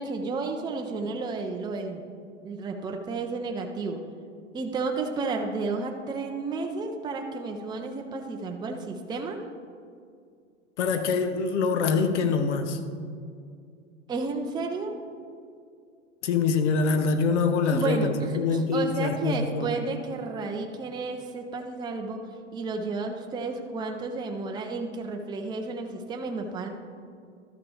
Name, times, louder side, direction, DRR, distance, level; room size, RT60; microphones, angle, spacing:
voice 1, 0.0-2.0 2.4-4.0 4.5-9.4 14.1-14.9 17.7-22.2 22.5-26.7, right 3 dB, 10° right, 3 dB, 0.6 m, -32 dB
voice 2, 10.8-12.8 16.2-19.7, left 4 dB, 65° left, 8 dB, 1.0 m, -25 dB
12.5 x 5.9 x 4.9 m, 2.3 s
hypercardioid pair, 100°, 38 cm